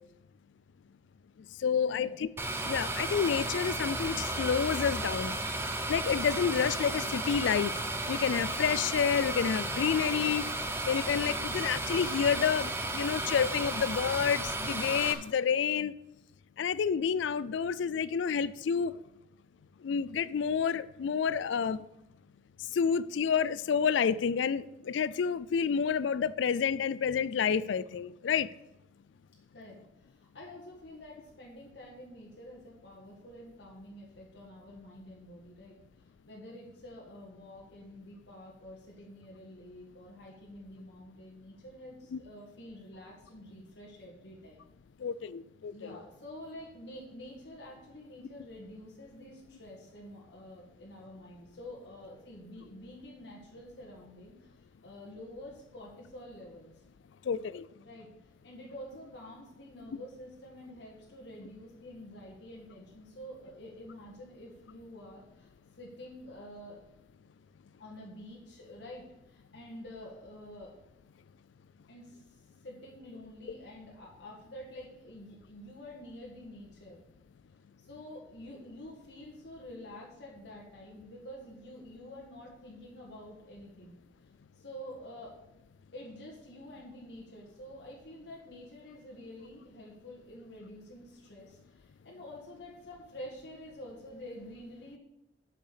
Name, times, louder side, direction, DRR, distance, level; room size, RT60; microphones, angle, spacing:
voice 1, 1.6-2.3 2.7-5.3 5.9-7.7 8.1-10.4 10.9-15.9 16.6-18.9 19.8-21.8 22.7-28.5 42.1-42.2 45.0-45.7 57.3-57.6, left 7 dB, 80° left, 0.4 m, -29 dB
sound 1, 2.4-15.1, right 2 dB, 15° right, 0.8 m, -34 dB
voice 2, 29.5-35.8 36.3-44.6 45.7-56.7 57.8-58.1 58.4-65.5 65.8-66.8 67.8-70.7 71.9-77.0 77.8-84.0 84.6-85.3 85.9-95.0, left 1 dB, 65° left, 1.8 m, -48 dB
8.0 x 6.6 x 6.8 m
head